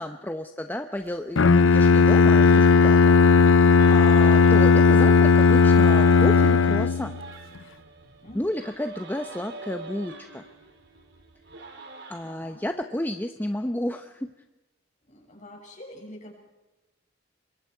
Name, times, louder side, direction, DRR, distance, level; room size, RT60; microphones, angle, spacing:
voice 1, 0.0-7.2 8.3-10.4 12.1-14.3, left 1 dB, 10° left, 6 dB, 0.8 m, -32 dB
Bowed string instrument, 1.4-7.2, left 5 dB, 90° left, 0.6 m, -16 dB
sound 1, 3.8-12.3, right 3 dB, 60° right, 3.7 m, -41 dB
voice 2, 12.2-12.6 15.1-16.3, left 1 dB, 40° left, 1 dB, 6.6 m, -46 dB
26.5 x 22.5 x 4.7 m, 1.0 s
head